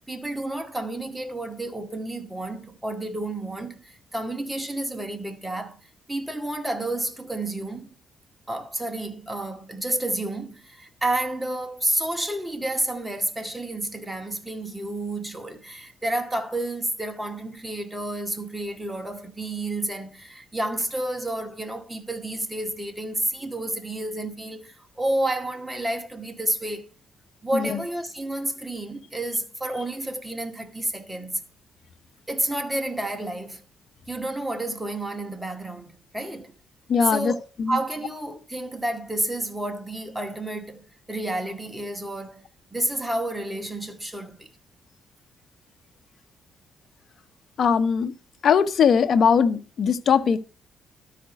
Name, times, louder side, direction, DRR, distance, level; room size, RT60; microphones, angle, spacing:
voice 1, 0.1-5.8 6.1-7.9 8.5-26.8 27.4-31.4 32.3-33.6 34.1-36.5 37.1-37.4 37.7-42.4 42.7-44.5, right 1 dB, 10° right, 2.0 m, -30 dB
voice 2, 36.9-37.3 37.6-37.8 47.6-48.1 48.4-50.4, left 6 dB, 55° left, 1.0 m, -20 dB
12.5 x 5.1 x 6.2 m
cardioid pair, 90°, 0 cm